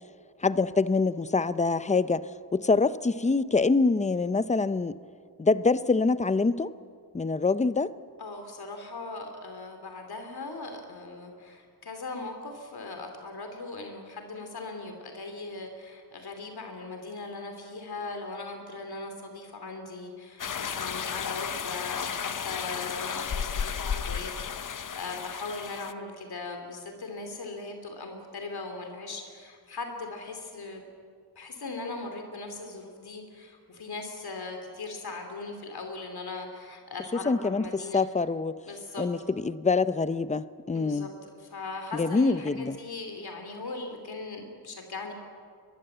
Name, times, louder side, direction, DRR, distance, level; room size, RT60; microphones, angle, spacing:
voice 1, 0.4-5.0 5.4-6.7 7.1-7.9 37.3-38.6 39.0-41.1 41.9-42.8, left 3 dB, 15° left, 0.6 m, -25 dB
voice 2, 8.2-30.8 31.3-38.0 38.6-39.1 40.7-45.1, left 3 dB, 65° left, 2.9 m, -39 dB
sound 1, 20.4-25.9, left 7 dB, 50° left, 0.8 m, -33 dB
23.0 x 22.0 x 7.9 m
wide cardioid pair, 135°, 41 cm